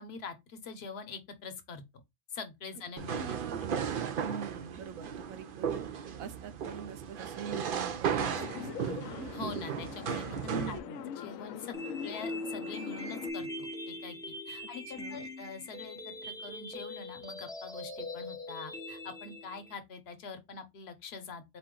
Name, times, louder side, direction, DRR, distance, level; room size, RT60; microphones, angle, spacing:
voice 1, 0.0-1.8 2.3-3.4 4.3-4.4 9.3-10.4 10.7-10.8 11.1-14.2 14.5-21.6, left 4 dB, 55° left, 1.0 m, -44 dB
sound 1, 3.0-10.8, right 7 dB, 55° right, 0.6 m, -35 dB
voice 2, 3.2-5.8 6.2-9.3 10.4-11.1 14.9-15.3, right 7 dB, 90° right, 1.1 m, -43 dB
sound 2, 8.2-13.3, left 9 dB, 80° left, 1.0 m, -42 dB
sound 3, 11.7-19.7, left 1 dB, 5° left, 0.5 m, -41 dB
4.2 x 3.0 x 3.7 m
omnidirectional pair, 1.4 m